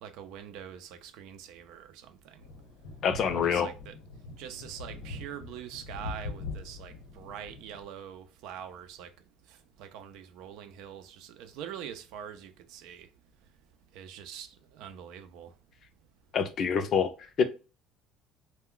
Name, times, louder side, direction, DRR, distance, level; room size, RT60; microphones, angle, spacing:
voice 1, 0.0-2.4 3.2-3.9 4.4-9.1 9.8-13.1 13.9-14.5 14.7-15.5, right 9 dB, 75° right, 0.5 m, -44 dB
sound 1, 2.4-7.9, left 3 dB, 85° left, 1.0 m, -42 dB
voice 2, 3.0-3.7 16.3-17.4, left 6 dB, 55° left, 0.5 m, -26 dB
2.2 x 2.2 x 3.7 m
supercardioid pair, 80°, 0 cm